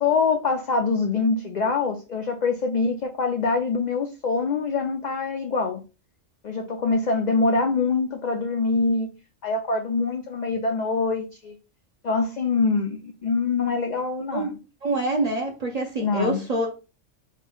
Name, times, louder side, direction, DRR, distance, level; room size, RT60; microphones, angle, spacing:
voice 1, 0.0-5.8 6.4-9.1 9.4-11.5 12.0-14.6 16.0-16.4, left 4 dB, 80° left, 0.4 m, -24 dB
voice 2, 14.8-16.7, right 2 dB, 50° right, 0.5 m, -26 dB
3.0 x 2.3 x 4.2 m
omnidirectional pair, 1.3 m